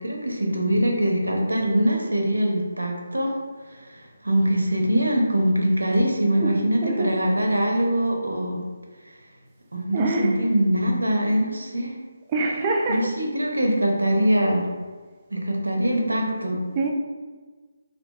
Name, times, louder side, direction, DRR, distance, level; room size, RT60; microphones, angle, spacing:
voice 1, 0.0-3.4 3.7-8.6 9.7-11.9 12.9-14.7 15.3-16.6, equal, 75° right, 0 dB, 0.5 m, -23 dB
voice 2, 6.4-7.1 9.9-10.4 12.3-13.0 16.8-16.9, right 3 dB, 20° right, 0 dB, 0.3 m, -25 dB
2.6 x 2.4 x 2.2 m, 1.4 s
figure-of-eight pair, 150°, 0 cm